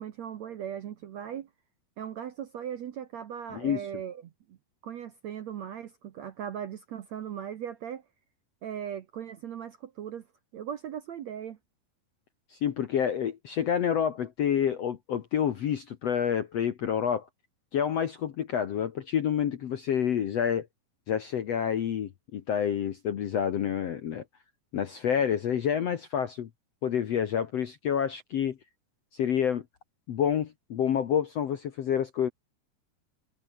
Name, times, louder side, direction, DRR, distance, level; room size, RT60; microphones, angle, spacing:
voice 1, 0.0-1.5 2.0-4.6 4.8-8.0 8.6-10.3 10.5-11.6, right 9 dB, 65° right, 1.8 m, -38 dB
voice 2, 12.5-17.3 17.7-20.7 21.1-24.2 24.7-26.5 26.8-28.6 29.1-29.6 30.1-32.3, left 8 dB, 60° left, 1.7 m, -28 dB
omnidirectional pair, 4.5 m